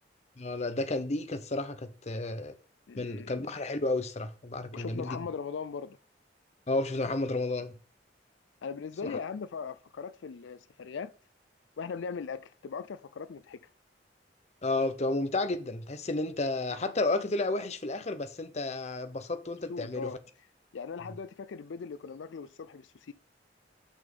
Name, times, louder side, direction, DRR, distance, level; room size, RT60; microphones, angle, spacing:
voice 1, 0.4-2.6 3.0-5.2 6.7-7.7 9.0-9.2 14.6-20.1, left 2 dB, 35° left, 0.7 m, -32 dB
voice 2, 2.9-3.3 4.7-6.0 8.6-11.1 11.8-13.6 19.7-20.2 20.7-23.1, left 5 dB, 85° left, 0.4 m, -39 dB
6.2 x 6.0 x 5.3 m
head